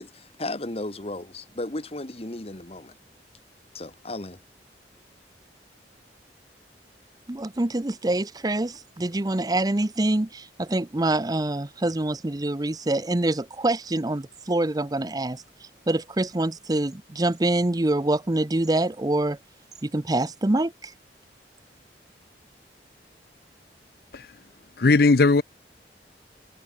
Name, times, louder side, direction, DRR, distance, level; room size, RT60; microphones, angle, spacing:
voice 1, 0.0-2.9 3.7-4.4, left 2 dB, 35° left, 1.6 m, -35 dB
voice 2, 7.3-19.4 19.8-20.9, right 2 dB, 20° right, 0.7 m, -25 dB
voice 3, 24.8-25.4, left 3 dB, 60° left, 0.6 m, -18 dB
head